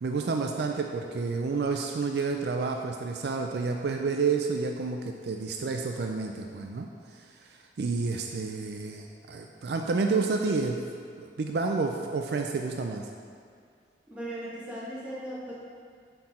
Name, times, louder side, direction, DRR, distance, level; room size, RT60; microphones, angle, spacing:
voice 1, 0.0-6.9 7.1-7.2 7.5-10.8 11.2-13.1, right 4 dB, 60° right, 3 dB, 0.4 m, -30 dB
voice 2, 14.1-15.5, right 1 dB, 10° right, -9 dB, 1.6 m, -37 dB
7.5 x 4.6 x 4.2 m, 2.2 s
head